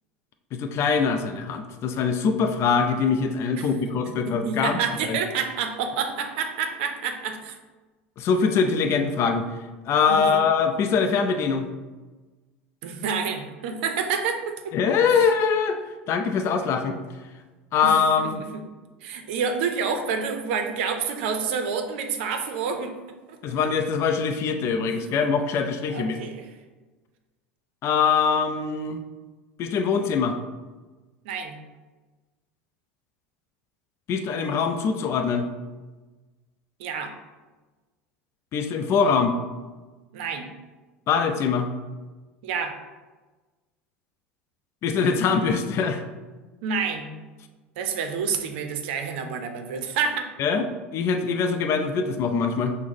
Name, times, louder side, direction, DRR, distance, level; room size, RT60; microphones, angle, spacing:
voice 1, 0.5-4.8 5.0-5.2 8.2-9.5 9.9-11.7 14.7-15.8 16.1-17.0 17.7-18.4 23.4-26.2 27.8-29.0 29.6-30.4 34.1-35.5 38.5-39.3 41.1-41.7 44.8-46.0 50.4-52.8, left 5 dB, 45° left, 6 dB, 0.4 m, -23 dB
voice 2, 4.0-7.6 10.1-10.4 12.8-14.5 15.1-15.2 17.8-18.0 18.5-18.6 19.0-22.9 23.3-23.6 25.9-26.4 31.2-31.6 36.8-37.1 40.1-40.5 42.4-42.8 46.6-47.1 47.8-50.3, right 6 dB, 65° right, 6 dB, 0.6 m, -28 dB
5.9 x 2.1 x 3.6 m, 1.3 s
hypercardioid pair, 80°, 6 cm